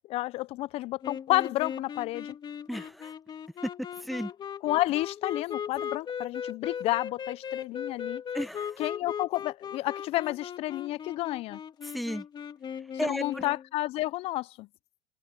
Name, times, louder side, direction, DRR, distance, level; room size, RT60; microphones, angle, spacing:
voice 1, 0.1-2.4 4.6-8.2 8.8-11.6 13.0-14.7, left 17 dB, 55° left, 0.7 m, -30 dB
sound 1, 1.0-13.6, left 8 dB, 35° left, 3.1 m, -38 dB
voice 2, 2.7-3.1 4.0-4.3 8.3-8.9 11.9-12.2 13.0-13.4, equal, ahead, 1.5 m, -34 dB
open air
supercardioid pair, 95°, 12 cm